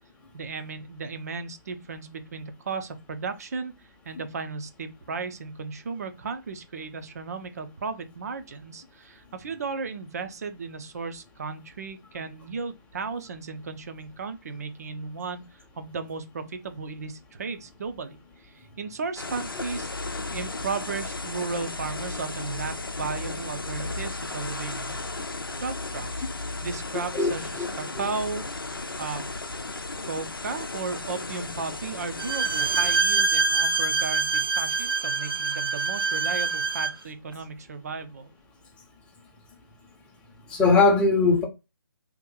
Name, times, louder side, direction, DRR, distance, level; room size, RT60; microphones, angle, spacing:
voice 1, 0.3-3.7 4.0-19.9 20.3-24.9 25.6-28.7 29.0-29.2 30.0-38.3, right 4 dB, 45° right, 0.7 m, -35 dB
sound 1, 19.2-33.0, left 3 dB, 80° left, 0.6 m, -35 dB
Bowed string instrument, 32.2-37.0, right 4 dB, 85° right, 0.5 m, -25 dB
voice 2, 40.5-41.4, left 3 dB, 10° left, 0.8 m, -19 dB
2.9 x 2.5 x 3.8 m
figure-of-eight pair, 140°, 12 cm